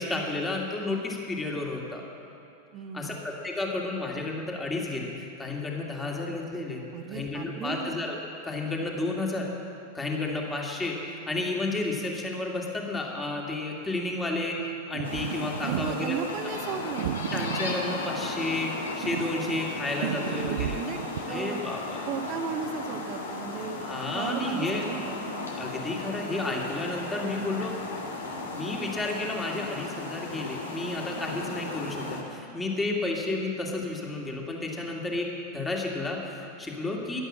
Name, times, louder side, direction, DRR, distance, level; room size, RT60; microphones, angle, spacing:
voice 1, 0.0-2.0 2.9-6.8 7.1-8.2 8.4-9.5 9.9-14.6 14.9-16.2 17.3-20.8 21.3-22.0 23.8-24.9 25.6-27.8 28.5-37.2, left 2 dB, 10° left, 0 dB, 2.4 m, -31 dB
voice 2, 2.7-3.2 6.9-7.9 15.6-17.1 19.6-21.0 21.2-21.7 22.1-23.8 24.1-25.5, right 7 dB, 35° right, 6 dB, 1.3 m, -36 dB
sound 1, 14.9-16.1 17.0-18.5 19.0-21.2, right 12 dB, 55° right, 0.3 m, -33 dB
sound 2, 15.0-32.2, left 2 dB, 65° left, 2.3 m, -36 dB
16.0 x 11.0 x 7.6 m, 2.7 s
figure-of-eight pair, 90°, 0 cm